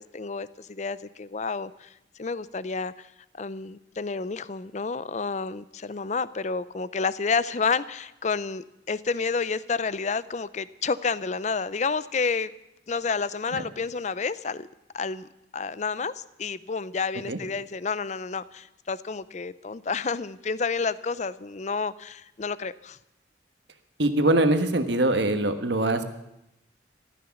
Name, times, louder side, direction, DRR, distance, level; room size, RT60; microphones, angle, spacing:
voice 1, 0.0-1.9 2.2-12.5 12.9-14.7 14.9-23.0, left 4 dB, 40° left, 17 dB, 0.5 m, -30 dB
voice 2, 24.0-26.0, right 1 dB, 70° right, 8 dB, 1.4 m, -23 dB
14.5 x 13.0 x 7.1 m, 0.87 s
head